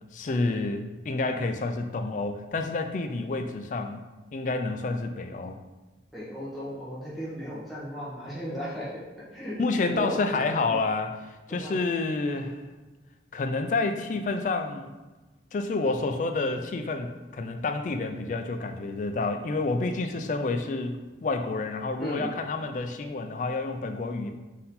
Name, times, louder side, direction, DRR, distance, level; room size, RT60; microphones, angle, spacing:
voice 1, 0.1-4.0 4.3-5.6 9.6-11.2 11.5-12.6 13.3-14.9 15.5-24.3, left 3 dB, 45° left, 6 dB, 0.3 m, -29 dB
voice 2, 6.1-8.9 9.3-10.8 11.5-11.8 22.0-22.4, equal, ahead, -9 dB, 0.9 m, -36 dB
3.9 x 2.7 x 4.0 m, 1.2 s
head